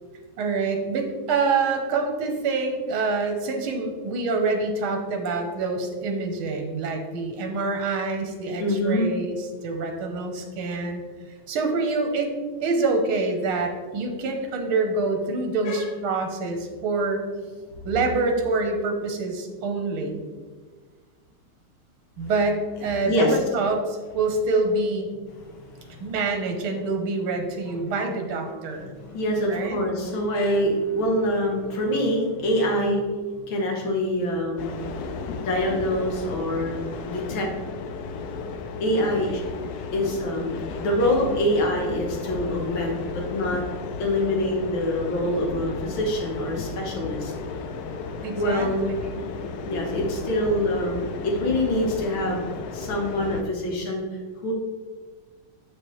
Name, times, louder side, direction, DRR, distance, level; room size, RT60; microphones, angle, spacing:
voice 1, 0.4-9.4 9.6-11.0 11.5-12.3 12.6-17.2 17.8-20.2 22.2-25.1 26.0-28.9 29.5-29.8 32.7-33.1 48.2-49.2, right 3 dB, 80° right, 3 dB, 1.8 m, -26 dB
voice 2, 8.6-9.1 15.6-15.8 22.2-22.3 23.1-23.4 25.4-26.1 28.8-33.0 33.4-34.8 35.4-37.5 38.8-39.4 39.9-43.6 44.0-47.3 48.4-48.9 49.7-52.4 52.7-54.0 54.4-54.5, left 1 dB, 70° left, 0 dB, 1.9 m, -25 dB
sound 1, 34.6-53.4, left 4 dB, 90° left, 0.8 m, -34 dB
7.2 x 6.5 x 3.2 m, 1.5 s
omnidirectional pair, 2.3 m